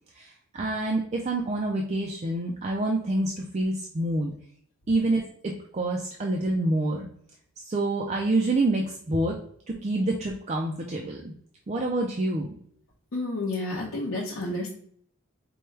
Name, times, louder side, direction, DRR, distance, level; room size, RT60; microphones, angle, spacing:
voice 1, 0.1-4.3 4.9-7.1 7.6-9.4 9.7-11.3 11.7-12.5, right 2 dB, 30° right, 0 dB, 0.4 m, -27 dB
voice 2, 13.1-14.7, left 2 dB, 70° left, -5 dB, 0.8 m, -30 dB
4.6 x 2.2 x 3.2 m, 0.62 s
head